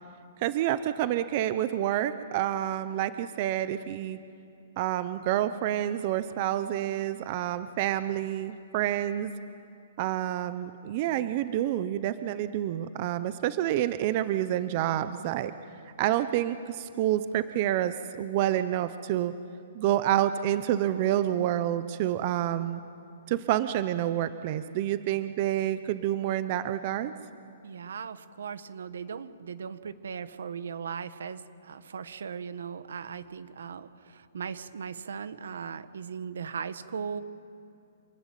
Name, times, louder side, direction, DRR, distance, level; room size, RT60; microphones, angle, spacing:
voice 1, 0.4-4.2 4.8-9.3 10.0-15.5 16.0-19.3 19.7-22.8 23.3-27.1, right 12 dB, 35° right, 12 dB, 0.8 m, -28 dB
voice 2, 27.6-37.2, right 6 dB, 80° right, 12 dB, 1.4 m, -38 dB
26.5 x 20.5 x 9.1 m, 2.5 s
hypercardioid pair, 165°, 0 cm